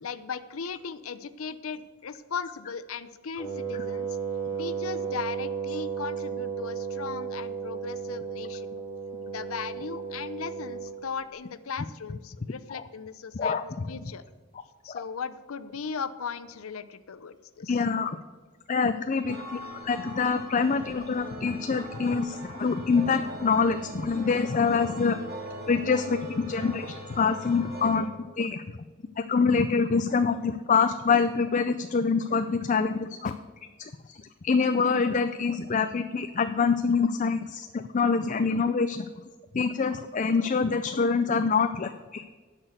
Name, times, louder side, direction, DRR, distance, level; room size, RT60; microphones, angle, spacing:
voice 1, 0.0-4.1 4.6-8.7 9.3-14.2 14.8-17.8, left 6 dB, 80° left, 14 dB, 0.6 m, -37 dB
Wind instrument woodwind instrument, 3.4-11.0, right 6 dB, 5° right, 3.1 m, -34 dB
voice 2, 13.3-13.8 14.9-15.0 17.7-18.2 18.7-25.2 25.7-28.6 29.2-33.3 33.8-34.2 34.4-39.1 39.5-42.3, left 5 dB, 35° left, 9 dB, 0.4 m, -25 dB
sound 1, 19.3-28.0, right 1 dB, 50° right, 2.8 m, -41 dB
10.5 x 6.1 x 8.0 m, 1.4 s
head